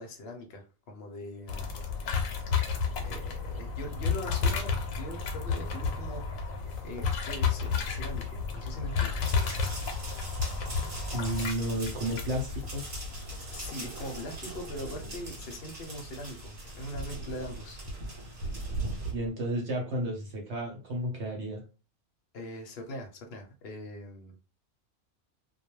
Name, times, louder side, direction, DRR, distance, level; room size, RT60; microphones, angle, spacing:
voice 1, 0.0-1.8 3.0-6.5 6.8-9.4 13.5-17.8 22.3-24.4, left 1 dB, 55° left, 3 dB, 0.7 m, -42 dB
sound 1, 1.5-14.2, left 5 dB, 85° left, 1.0 m, -32 dB
sound 2, 1.7-19.3, right 2 dB, 90° right, 1.1 m, -44 dB
sound 3, 9.2-19.1, right 2 dB, 40° right, 0.7 m, -45 dB
voice 2, 11.1-12.8 19.1-21.6, right 1 dB, 60° right, 0 dB, 1.0 m, -32 dB
2.2 x 2.2 x 3.0 m, 0.33 s
omnidirectional pair, 1.4 m